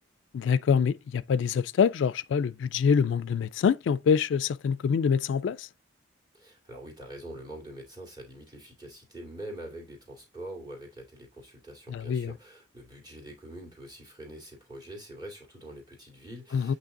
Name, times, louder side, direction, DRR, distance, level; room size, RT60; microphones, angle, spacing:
voice 1, 0.3-5.7 11.9-12.3 16.5-16.7, left 6 dB, 75° left, 0.3 m, -25 dB
voice 2, 6.3-16.8, right 1 dB, 20° right, 2.3 m, -44 dB
8.4 x 3.2 x 3.7 m
head